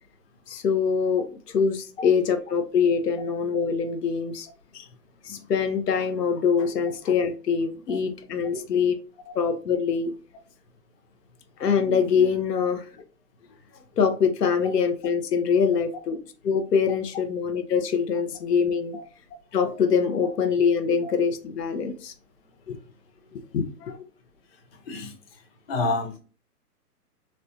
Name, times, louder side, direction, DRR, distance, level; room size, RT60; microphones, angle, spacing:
voice 1, 0.5-4.5 4.7-4.9 5.2-8.9 9.3-10.1 11.6-13.0 14.0-16.2 16.4-19.0 19.5-22.1 22.7-22.8 23.3-24.0, left 6 dB, 80° left, 0.7 m, -24 dB
voice 2, 25.7-26.2, left 3 dB, 40° left, 0.8 m, -28 dB
4.1 x 2.1 x 2.6 m
hypercardioid pair, 145°, 47 cm